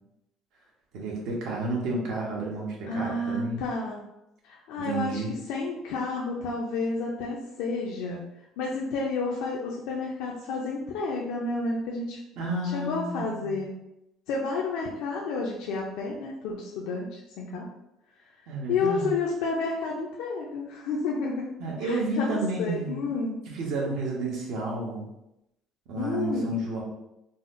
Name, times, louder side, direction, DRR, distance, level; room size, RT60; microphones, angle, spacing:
voice 1, 0.9-3.6 4.8-5.3 12.4-13.6 18.5-19.2 21.6-23.1 23.5-25.1 25.9-26.8, right 2 dB, 75° right, -2 dB, 0.9 m, -31 dB
voice 2, 2.9-4.0 4.4-8.2 8.6-12.2 12.7-13.7 14.3-17.7 18.7-21.5 21.8-23.4 25.9-26.6, left 3 dB, 85° left, -2 dB, 0.4 m, -30 dB
3.9 x 2.0 x 2.5 m, 0.87 s
cardioid pair, 125°, 0 cm